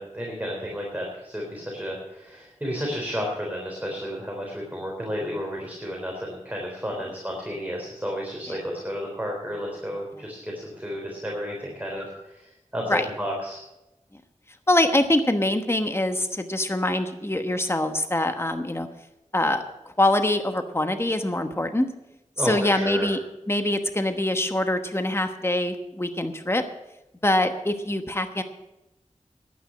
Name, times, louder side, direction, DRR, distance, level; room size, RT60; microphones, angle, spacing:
voice 1, 0.0-13.6 22.4-23.1, equal, 10° right, -2 dB, 3.6 m, -32 dB
voice 2, 14.7-18.9 19.3-19.6 20.0-21.9 22.4-23.2 23.5-26.6 27.2-28.4, left 1 dB, 20° left, 7 dB, 1.1 m, -24 dB
11.0 x 9.4 x 8.5 m, 0.94 s
wide cardioid pair, 50°, 13 cm